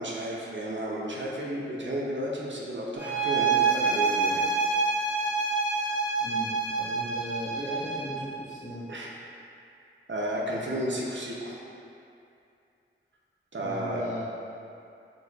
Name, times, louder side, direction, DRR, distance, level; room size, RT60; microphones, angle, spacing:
voice 1, 0.0-4.4 8.9-9.1 10.1-11.5 13.5-14.0, equal, 60° right, -4 dB, 0.6 m, -32 dB
sound 1, 3.0-8.3, right 4 dB, 10° right, 0.9 m, -27 dB
voice 2, 6.2-8.8 13.6-14.2, equal, 35° left, -9 dB, 1.2 m, -37 dB
4.8 x 4.1 x 2.3 m, 2.6 s
wide cardioid pair, 70°, 21 cm